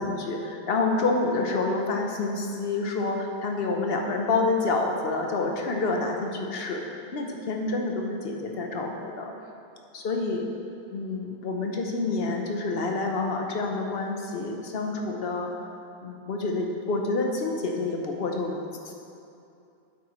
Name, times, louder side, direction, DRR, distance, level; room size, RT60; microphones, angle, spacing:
voice 1, 0.0-9.3 9.9-10.5 10.9-15.5 16.0-18.9, left 3 dB, 65° left, 1 dB, 1.0 m, -28 dB
8.7 x 7.3 x 3.1 m, 2.6 s
omnidirectional pair, 1.1 m